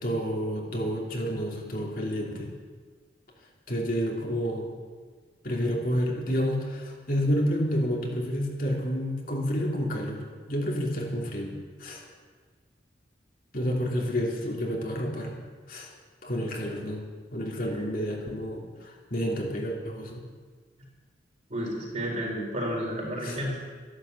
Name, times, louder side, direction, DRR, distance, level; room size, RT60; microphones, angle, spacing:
voice 1, 0.0-2.5 3.7-4.7 5.4-11.5 11.8-12.0 13.5-15.3 15.7-15.9 16.2-17.0 17.3-20.2 23.2-23.4, equal, 50° left, -1 dB, 2.9 m, -29 dB
voice 2, 21.5-23.7, equal, 40° right, -2 dB, 4.3 m, -31 dB
13.5 x 11.5 x 8.2 m, 1.5 s
head